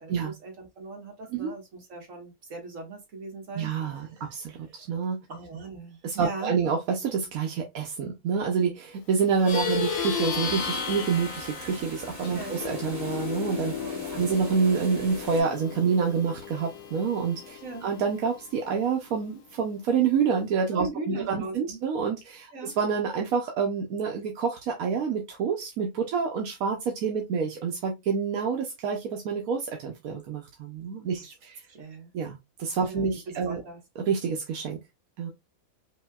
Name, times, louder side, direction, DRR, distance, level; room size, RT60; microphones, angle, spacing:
voice 1, 0.0-5.0 5.3-6.6 12.3-12.6 13.8-14.2 17.6-17.9 20.7-21.8 22.5-22.8 31.2-31.3 31.7-32.1 32.8-33.8, right 3 dB, 65° right, 1.8 m, -40 dB
voice 2, 3.5-5.2 6.0-13.7 14.1-31.6 32.1-33.6 34.0-34.8 35.2-35.3, right 6 dB, 85° right, 1.2 m, -28 dB
Plucked string instrument, 9.3-19.0, left 6 dB, 70° left, 1.1 m, -34 dB
sound 1, 9.5-15.4, right 2 dB, 30° right, 2.3 m, -43 dB
5.3 x 2.8 x 2.3 m
omnidirectional pair, 1.5 m